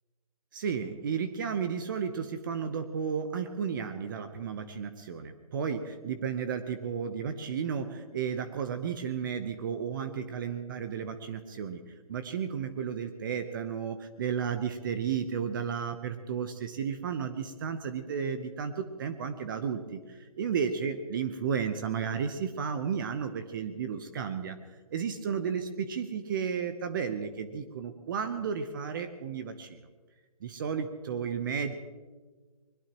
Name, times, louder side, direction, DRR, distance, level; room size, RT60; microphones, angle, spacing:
voice 1, 0.5-24.6 24.9-29.8 30.4-31.7, right 7 dB, 35° right, 8 dB, 0.9 m, -33 dB
22.0 x 21.0 x 3.0 m, 1.4 s
hypercardioid pair, 155°, 19 cm